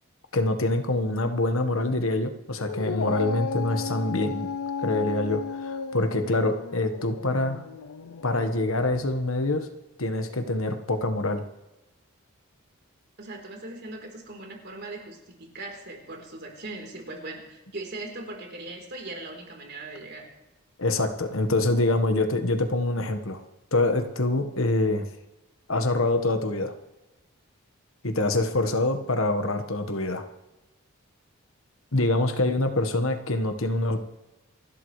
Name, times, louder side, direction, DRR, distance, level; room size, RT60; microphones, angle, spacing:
voice 1, 0.3-4.5 4.8-7.6 8.2-9.7 10.0-11.4 20.8-23.4 23.7-25.0 25.7-26.7 28.0-30.2 31.9-34.0, left 2 dB, 70° left, 6 dB, 1.4 m, -25 dB
Dog, 2.6-9.2, left 5 dB, 85° left, 0.6 m, -34 dB
voice 2, 13.2-20.3, right 2 dB, 50° right, 2 dB, 3.9 m, -39 dB
28.0 x 12.5 x 3.3 m, 1.0 s
head